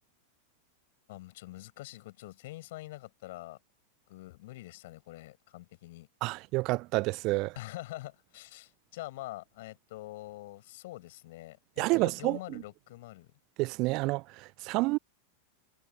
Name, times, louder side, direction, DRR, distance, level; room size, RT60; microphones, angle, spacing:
voice 1, 1.1-3.6 4.1-6.1 7.5-13.3, left 18 dB, 50° left, 6.8 m, -45 dB
voice 2, 6.2-7.5 11.8-12.4 13.6-15.0, right 23 dB, 40° right, 0.3 m, -29 dB
figure-of-eight pair, 90°, 0 cm